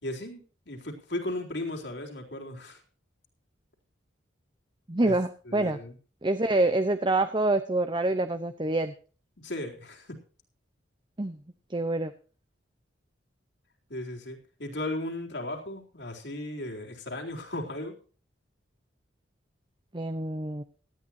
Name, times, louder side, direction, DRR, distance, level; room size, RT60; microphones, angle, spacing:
voice 1, 0.0-2.8 5.0-5.2 5.5-6.0 9.4-10.2 13.9-17.9, left 1 dB, 65° left, 1 dB, 3.9 m, -36 dB
voice 2, 4.9-5.8 6.2-8.9 11.2-11.4 11.7-12.1 19.9-20.6, right 2 dB, 25° right, 9 dB, 0.8 m, -26 dB
18.5 x 13.5 x 2.8 m, 0.38 s
head